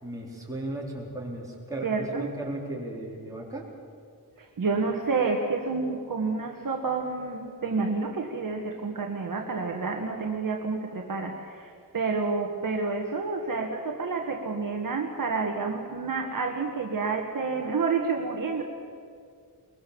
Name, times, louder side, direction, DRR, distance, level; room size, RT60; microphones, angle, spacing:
voice 1, 0.0-3.6, right 1 dB, 10° right, -3 dB, 4.2 m, -36 dB
voice 2, 1.8-2.3 4.4-18.6, right 4 dB, 55° right, 2 dB, 1.6 m, -29 dB
22.0 x 21.0 x 7.1 m, 2.2 s
wide cardioid pair, 160°, 40 cm